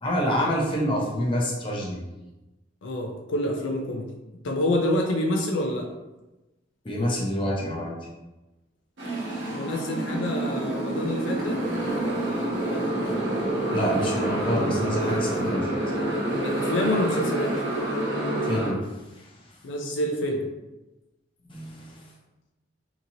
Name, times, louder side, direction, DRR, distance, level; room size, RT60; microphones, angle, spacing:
voice 1, 0.0-2.0 6.8-8.0 13.1-13.2 13.7-15.7 18.4-18.8 19.2-19.3 21.5-22.0, equal, 25° left, -3 dB, 0.6 m, -27 dB
voice 2, 2.8-4.1 4.4-5.9 9.5-11.6 16.3-17.6 19.6-20.4, left 1 dB, 75° left, 1 dB, 0.4 m, -27 dB
Motorcycle, 9.0-18.7, right 1 dB, 65° right, 0.9 m, -27 dB
2.8 x 2.6 x 2.7 m, 1.0 s
head